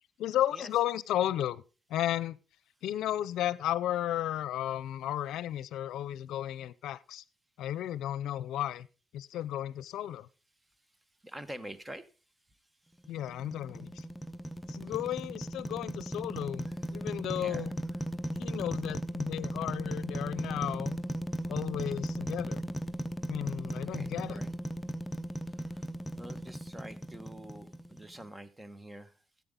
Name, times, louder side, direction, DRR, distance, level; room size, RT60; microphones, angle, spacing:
voice 1, 0.2-1.6 1.9-2.4 2.8-7.2 7.6-8.9 9.1-10.3 13.1-14.0 14.7-17.7 18.3-21.0 21.5-22.6 23.3-24.4, left 12 dB, 85° left, 0.5 m, -34 dB
voice 2, 11.2-12.1 12.8-12.9 16.7-16.8 17.3-17.7 23.9-24.5 25.1-29.2, right 1 dB, 15° right, 1.1 m, -47 dB
sound 1, 13.0-28.2, equal, 15° left, 0.7 m, -37 dB
14.0 x 8.6 x 3.8 m
cardioid pair, 90°, 0 cm